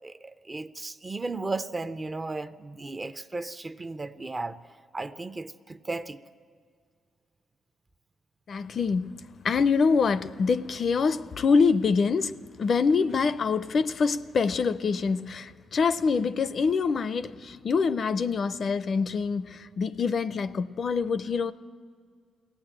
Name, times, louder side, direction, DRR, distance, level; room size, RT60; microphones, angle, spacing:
voice 1, 0.0-4.6 4.9-6.2, right 3 dB, 20° right, 0.5 m, -35 dB
voice 2, 8.5-21.5, left 5 dB, 40° left, 0.5 m, -25 dB
22.5 x 17.5 x 8.9 m
wide cardioid pair, 165°, 0 cm